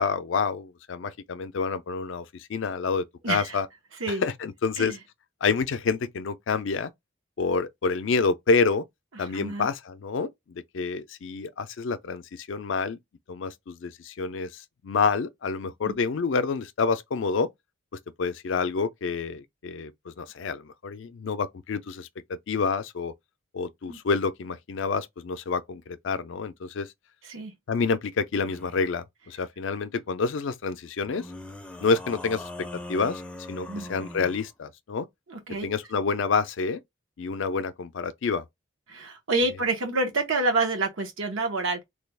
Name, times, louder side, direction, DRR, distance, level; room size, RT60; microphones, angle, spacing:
voice 1, 0.0-3.7 4.1-4.9 5.4-6.9 7.4-8.8 9.2-13.0 13.3-17.5 18.2-23.1 23.5-26.9 27.7-31.3 31.8-33.2 33.5-35.1 35.6-36.8 37.2-38.4, left 4 dB, 70° left, 0.4 m, -28 dB
voice 2, 9.3-9.7 15.8-15.9 23.9-24.0 27.3-27.5 33.7-33.9 35.3-35.7 38.9-41.8, right 2 dB, 90° right, 1.1 m, -27 dB
sound 1, 28.4-28.9 31.1-34.5, left 1 dB, 5° left, 0.4 m, -41 dB
3.3 x 2.3 x 3.3 m
head